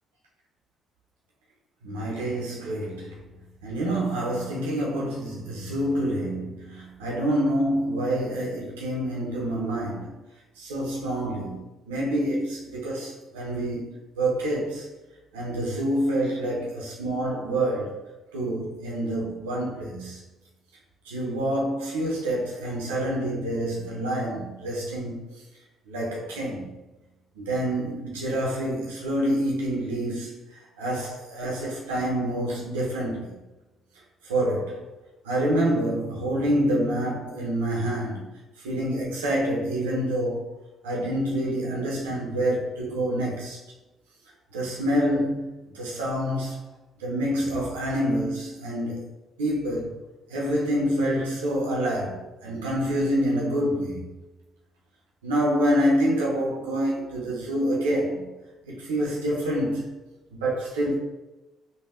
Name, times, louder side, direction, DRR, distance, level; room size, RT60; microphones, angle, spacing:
voice 1, 1.8-3.1 3.6-10.2 10.6-14.9 15.3-18.0 18.3-20.2 21.1-25.2 25.9-26.7 27.4-30.4 30.8-33.3 34.2-34.9 35.2-38.3 38.6-40.5 40.8-43.6 44.5-46.6 47.0-49.1 49.4-49.9 50.3-54.1 55.2-58.3 58.7-59.9 60.3-60.9, right 1 dB, 85° right, 0.5 m, -27 dB
3.3 x 2.1 x 2.4 m
hypercardioid pair, 50°, 0 cm